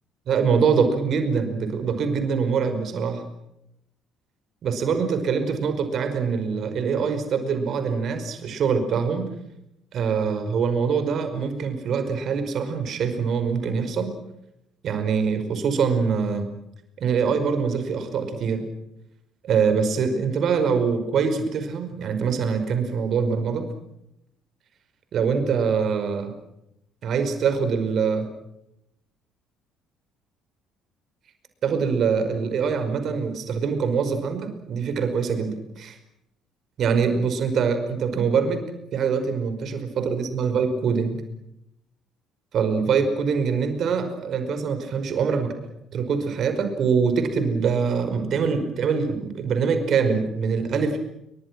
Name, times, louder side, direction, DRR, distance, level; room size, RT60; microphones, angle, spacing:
voice 1, 0.3-3.2 4.6-9.3 9.9-14.1 14.8-16.5 17.0-18.6 19.4-23.6 25.1-26.3 27.0-28.3 31.6-36.0 36.8-38.6 38.9-41.2 42.5-45.5 45.9-51.0, right 6 dB, 50° right, 8 dB, 5.2 m, -24 dB
29.5 x 23.5 x 6.2 m, 0.83 s
figure-of-eight pair, 50°, 0 cm